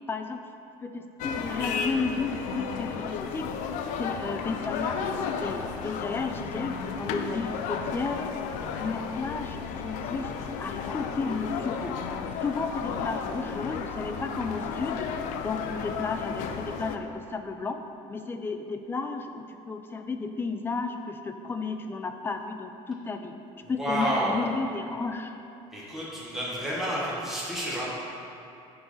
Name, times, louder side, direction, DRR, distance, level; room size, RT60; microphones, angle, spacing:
voice 1, 0.1-0.4 0.8-3.4 4.0-8.2 8.8-10.3 10.6-12.0 12.4-15.1 15.4-17.8 18.1-23.3 23.7-25.4, left 4 dB, 15° left, 6 dB, 0.4 m, -33 dB
sound 1, 1.2-17.0, left 6 dB, 70° left, 0.5 m, -33 dB
voice 2, 23.8-24.5 25.7-27.8, equal, ahead, -8 dB, 1.5 m, -29 dB
9.5 x 3.9 x 5.5 m, 2.7 s
cardioid pair, 150°, 13 cm